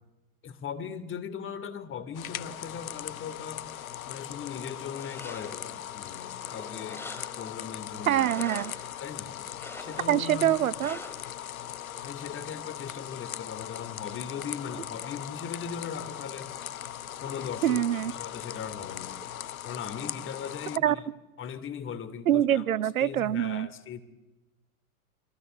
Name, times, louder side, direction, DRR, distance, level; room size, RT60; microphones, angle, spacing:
voice 1, 0.4-3.6 4.1-7.1 7.4-8.2 9.0-9.4 9.8-10.6 12.0-16.5 17.2-19.2 19.6-21.0 21.4-22.6 23.0-24.0, left 7 dB, 30° left, 2.8 m, -39 dB
sound 1, 2.1-20.8, left 11 dB, 75° left, 1.1 m, -39 dB
sound 2, 4.8-5.7 6.2-7.6 8.0-8.9 9.5-10.2 10.8-11.4, left 1 dB, 5° left, 3.5 m, -45 dB
voice 2, 8.1-8.7 10.1-11.0 17.6-18.1 20.8-21.0 22.3-23.7, right 11 dB, 75° right, 1.0 m, -25 dB
29.5 x 24.0 x 8.0 m
hypercardioid pair, 100°, 42 cm